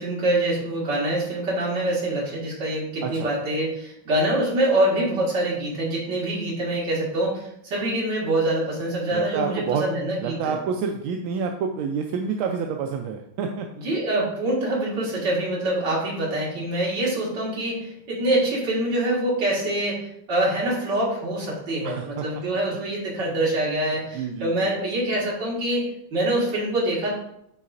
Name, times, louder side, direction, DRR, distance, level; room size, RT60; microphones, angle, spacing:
voice 1, 0.0-10.6 13.8-27.1, right 1 dB, 60° right, -5 dB, 2.5 m, -25 dB
voice 2, 3.0-3.3 9.1-9.8 10.2-13.7 21.8-22.2 23.2-23.3 24.1-24.7, right 6 dB, 85° right, 3 dB, 1.4 m, -28 dB
9.5 x 3.9 x 2.5 m, 0.77 s
omnidirectional pair, 2.2 m